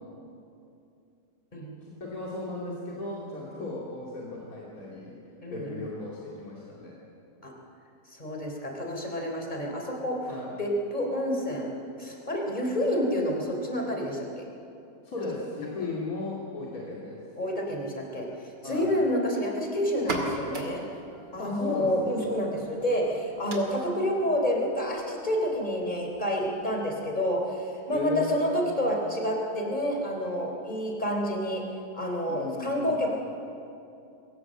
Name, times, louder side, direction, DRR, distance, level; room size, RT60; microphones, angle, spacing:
voice 1, 1.8-5.2 5.5-7.0 10.3-10.5 15.0-17.2 18.6-18.9 21.4-22.2 27.9-28.7 32.3-33.1, left 2 dB, 55° left, -5 dB, 3.4 m, -36 dB
voice 2, 5.4-5.9 7.4-7.5 8.2-10.3 10.6-11.7 12.0-14.4 17.4-18.3 18.6-20.8 21.3-31.6 31.9-33.1, equal, 25° left, 1 dB, 3.7 m, -29 dB
sound 1, 19.9-27.4, right 2 dB, 90° right, 3.1 m, -40 dB
22.5 x 18.0 x 7.6 m, 2.6 s
omnidirectional pair, 1.8 m